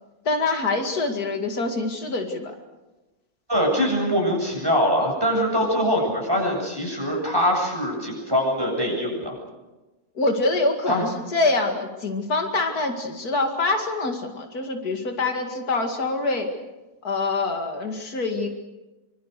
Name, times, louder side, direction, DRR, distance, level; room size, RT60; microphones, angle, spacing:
voice 1, 0.2-2.5 10.1-16.5 17.0-18.5, left 3 dB, 80° left, 4 dB, 2.8 m, -25 dB
voice 2, 3.5-9.3 10.9-11.0, equal, 15° right, 0 dB, 8.0 m, -23 dB
26.0 x 24.5 x 6.7 m, 1.1 s
omnidirectional pair, 1.6 m